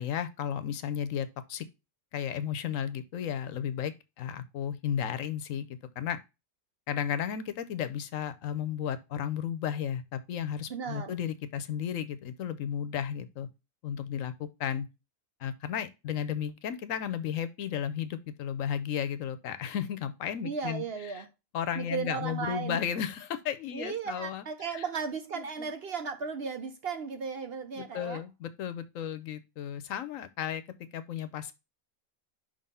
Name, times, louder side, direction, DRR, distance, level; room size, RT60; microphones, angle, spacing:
voice 1, 0.0-1.7 2.1-6.2 6.9-13.5 13.8-14.9 15.4-20.8 21.5-24.4 24.7-24.8 25.4-25.7 27.8-30.6 30.9-31.5, left 9 dB, 70° left, 1.0 m, -34 dB
voice 2, 10.7-11.2 20.4-21.3 21.7-22.8 23.7-28.2, right 6 dB, 55° right, 0.8 m, -35 dB
5.4 x 3.8 x 5.4 m
omnidirectional pair, 1.5 m